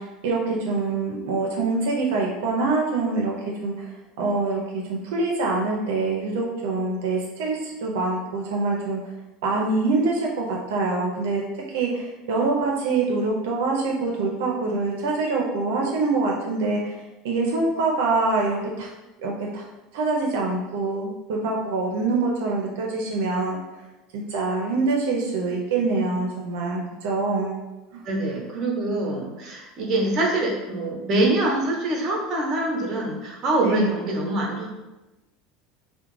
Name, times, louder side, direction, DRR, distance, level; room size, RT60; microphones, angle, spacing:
voice 1, 0.0-3.3 3.6-3.9 4.2-4.6 4.9-9.0 9.4-11.4 11.7-17.0 17.2-18.9 19.2-19.6 19.9-23.6 24.1-27.6 27.9-28.0 33.6-33.9, right 3 dB, 80° right, -1 dB, 0.4 m, -25 dB
voice 2, 28.0-34.7, right 2 dB, 40° right, -1 dB, 0.7 m, -24 dB
2.4 x 2.1 x 3.0 m, 1.0 s
supercardioid pair, 125°, 0 cm